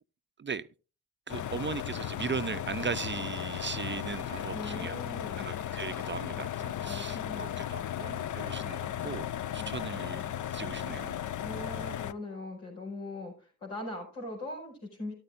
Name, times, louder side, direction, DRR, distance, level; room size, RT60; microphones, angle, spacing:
sound 1, 1.3-12.1, left 11 dB, 45° left, 0.6 m, -36 dB
voice 1, 1.3-4.9 5.4-11.2, right 5 dB, 25° right, 0.6 m, -38 dB
voice 2, 4.5-5.5 6.8-7.7 11.4-15.1, left 1 dB, 80° left, 5.1 m, -41 dB
13.0 x 12.5 x 2.5 m
hypercardioid pair, 40°, 45 cm